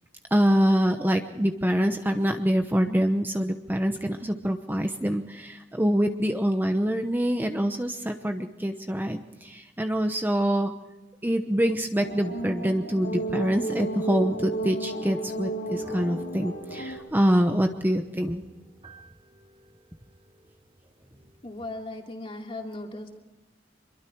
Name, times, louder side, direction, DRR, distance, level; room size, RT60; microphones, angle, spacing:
voice 1, 0.3-10.7 11.2-18.4, equal, 10° right, 5 dB, 1.0 m, -25 dB
sound 1, 12.0-17.0, right 2 dB, 80° left, 5.2 m, -33 dB
sound 2, 15.7-21.7, right 2 dB, 30° right, 2.9 m, -49 dB
voice 2, 21.4-23.2, left 2 dB, 30° left, 2 dB, 3.0 m, -37 dB
25.5 x 22.5 x 4.7 m, 1.1 s
head